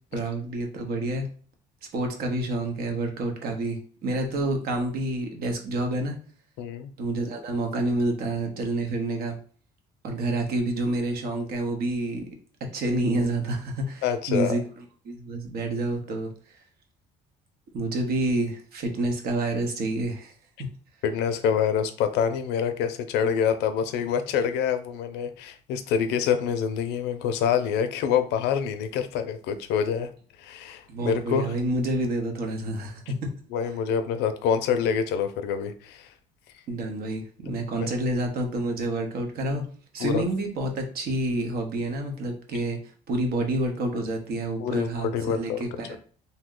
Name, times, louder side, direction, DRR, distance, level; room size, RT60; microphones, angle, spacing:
voice 1, 0.1-1.3 1.9-6.2 7.0-9.4 10.0-12.3 12.7-14.6 15.0-16.6 17.7-20.3 30.9-33.3 36.7-39.7 39.9-46.0, right 2 dB, 65° right, 3 dB, 0.8 m, -28 dB
voice 2, 6.6-6.9 14.0-14.6 21.0-30.1 30.4-31.5 33.5-36.1 40.0-40.2 44.6-45.8, left 7 dB, 85° left, 9 dB, 0.5 m, -26 dB
2.7 x 2.1 x 3.7 m, 0.43 s
cardioid pair, 110°, 17 cm